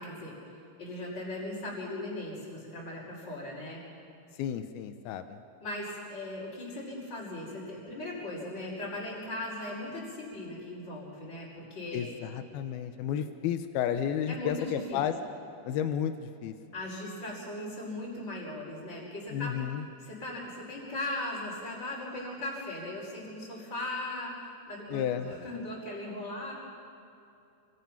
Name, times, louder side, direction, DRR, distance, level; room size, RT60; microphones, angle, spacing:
voice 1, 0.0-3.8 5.6-12.1 14.3-15.0 16.7-26.5, left 1 dB, 30° left, -8 dB, 5.5 m, -38 dB
voice 2, 4.4-5.4 11.9-15.2 15.6-16.5 19.3-19.8 24.9-25.3, left 9 dB, 90° left, 8 dB, 2.8 m, -32 dB
29.5 x 26.0 x 5.9 m, 2.7 s
omnidirectional pair, 4.3 m